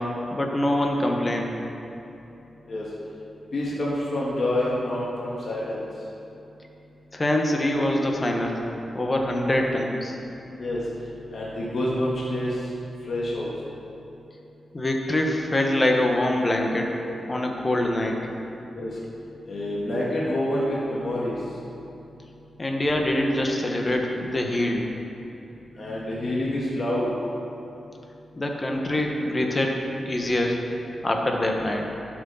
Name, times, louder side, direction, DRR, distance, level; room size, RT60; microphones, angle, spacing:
voice 1, 0.0-1.6 7.1-8.6 8.9-10.2 14.7-17.0 17.3-18.2 22.6-24.9 28.4-29.8 30.0-30.6 31.0-31.9, left 1 dB, 25° left, 1 dB, 1.2 m, -24 dB
voice 2, 3.5-5.8 10.6-10.8 11.3-12.6 13.1-13.5 18.7-19.0 19.5-21.4 25.8-27.1, left 1 dB, 50° left, -6 dB, 1.8 m, -27 dB
12.5 x 6.2 x 5.6 m, 2.9 s
wide cardioid pair, 100°, 0 cm